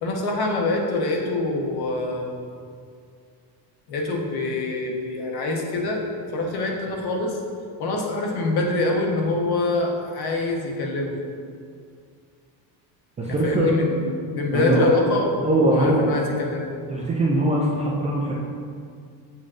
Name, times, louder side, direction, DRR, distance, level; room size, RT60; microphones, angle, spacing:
voice 1, 0.0-2.3 3.9-6.0 6.3-7.4 7.8-11.3 13.2-15.3 15.7-16.8, left 2 dB, 55° left, 1 dB, 1.0 m, -25 dB
voice 2, 13.2-13.7 14.5-14.9 15.4-16.1 16.9-18.3, right 1 dB, 15° right, -5 dB, 0.3 m, -21 dB
7.2 x 6.1 x 2.5 m, 2.2 s
cardioid pair, 155°, 46 cm